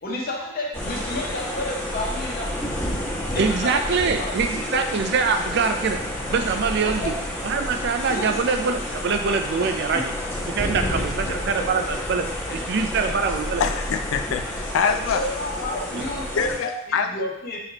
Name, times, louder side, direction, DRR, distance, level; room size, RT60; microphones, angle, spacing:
voice 1, 0.0-2.5 3.3-3.8 4.2-4.8 6.8-7.1 8.1-8.4 9.9-10.0 10.6-12.0 15.1-16.7 17.1-17.6, left 1 dB, 50° left, -2 dB, 0.9 m, -31 dB
sound 1, 0.7-16.6, left 1 dB, 10° left, 1.1 m, -30 dB
voice 2, 3.3-6.0 6.3-7.1 7.4-10.0 10.6-12.2 12.7-13.6 15.9-16.0, right 5 dB, 55° right, 6 dB, 0.4 m, -24 dB
voice 3, 13.6-15.2 16.4-17.1, left 6 dB, 75° left, 7 dB, 0.3 m, -24 dB
5.7 x 3.0 x 2.9 m, 0.84 s
head